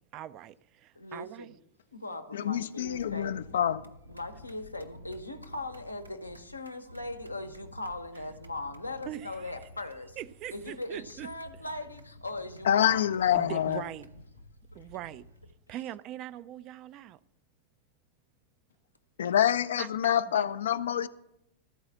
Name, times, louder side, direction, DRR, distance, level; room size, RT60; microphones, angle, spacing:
voice 1, 0.1-1.6 9.1-9.5 10.2-11.3 13.3-14.1 14.7-15.3 15.7-17.2 19.8-20.5, right 13 dB, 35° right, 0.3 m, -41 dB
voice 2, 0.9-1.6 1.9-3.4 4.1-10.2 10.5-13.0 15.7-15.8, left 2 dB, 85° left, 0.8 m, -39 dB
voice 3, 2.3-3.9 12.6-13.8 19.2-21.1, left 10 dB, 65° left, 0.3 m, -26 dB
sound 1, 2.8-15.5, left 1 dB, 85° right, 0.7 m, -51 dB
13.0 x 4.7 x 7.2 m
figure-of-eight pair, 90°, 0 cm